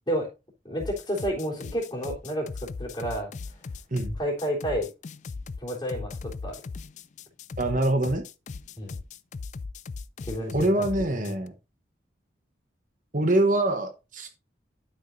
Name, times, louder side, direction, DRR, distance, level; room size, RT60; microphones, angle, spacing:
voice 1, 0.6-3.3 4.2-4.9 5.6-6.6 8.8-9.0 10.2-11.3, equal, 25° left, -3 dB, 3.6 m, -31 dB
sound 1, 0.8-11.5, left 4 dB, 40° left, 0.3 m, -38 dB
voice 2, 7.6-8.2 10.5-11.5 13.1-14.3, right 1 dB, 45° right, 6 dB, 1.0 m, -24 dB
11.5 x 6.2 x 2.7 m, 0.27 s
head